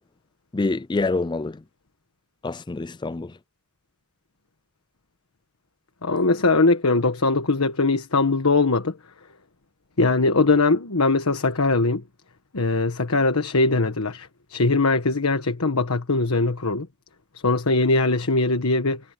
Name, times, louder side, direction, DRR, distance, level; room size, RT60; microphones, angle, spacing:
voice 1, 0.5-1.6 2.4-3.3, left 3 dB, 20° left, 0.4 m, -26 dB
voice 2, 6.0-9.0 10.0-12.0 12.5-16.9 17.4-19.0, left 3 dB, 85° left, 1.4 m, -21 dB
head